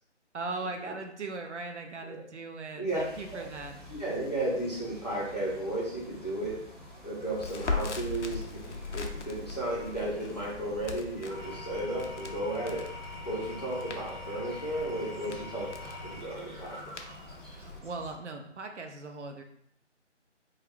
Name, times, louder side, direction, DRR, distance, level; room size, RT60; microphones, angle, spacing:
voice 1, 0.3-3.8 17.4-19.4, right 3 dB, 70° right, 4 dB, 0.6 m, -39 dB
sound 1, 2.9-18.2, equal, 30° right, 1.1 m, -49 dB
voice 2, 3.9-6.6 7.0-12.8 13.2-16.8, right 1 dB, 35° left, -7 dB, 0.7 m, -34 dB
Crackle, 7.4-17.8, left 4 dB, 70° left, 0.5 m, -40 dB
Engine / Tools, 11.1-17.6, left 2 dB, ahead, 1.2 m, -44 dB
2.4 x 2.3 x 3.4 m, 0.69 s
figure-of-eight pair, 175°, 36 cm